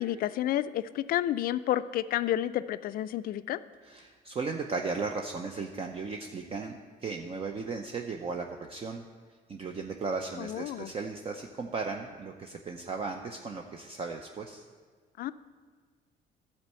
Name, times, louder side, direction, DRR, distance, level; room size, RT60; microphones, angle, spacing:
voice 1, 0.0-3.6 10.4-10.9 15.2-15.3, left 12 dB, 60° left, 14 dB, 0.4 m, -30 dB
voice 2, 3.8-9.0 9.5-14.6, right 4 dB, 35° right, 3 dB, 0.6 m, -36 dB
11.5 x 4.5 x 7.5 m, 1.6 s
cardioid pair, 110°, 17 cm